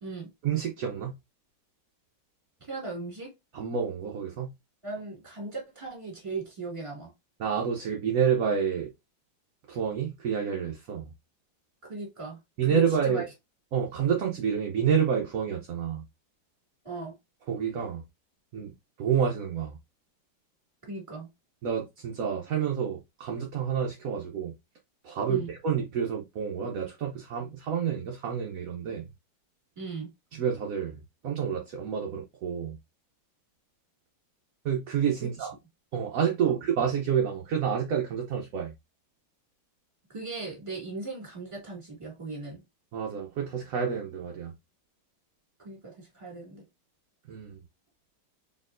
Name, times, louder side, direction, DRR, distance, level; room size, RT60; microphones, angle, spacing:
voice 1, 0.4-1.1 3.5-4.5 7.4-8.9 9.7-11.1 12.6-13.2 13.7-16.0 17.5-18.0 18.5-18.7 19.0-19.8 21.6-24.5 25.0-29.1 30.3-30.9 31.2-32.8 34.6-35.5 35.9-38.7 42.9-44.5 47.3-47.6, right 7 dB, 65° right, 0.9 m, -29 dB
voice 2, 2.6-3.3 4.8-7.1 11.8-12.4 12.7-13.2 16.8-17.2 20.9-21.3 25.3-25.5 29.8-30.1 35.2-35.5 36.4-36.6 40.1-42.6 45.6-46.7, right 3 dB, 15° right, 2.0 m, -38 dB
4.3 x 3.6 x 2.5 m
omnidirectional pair, 2.1 m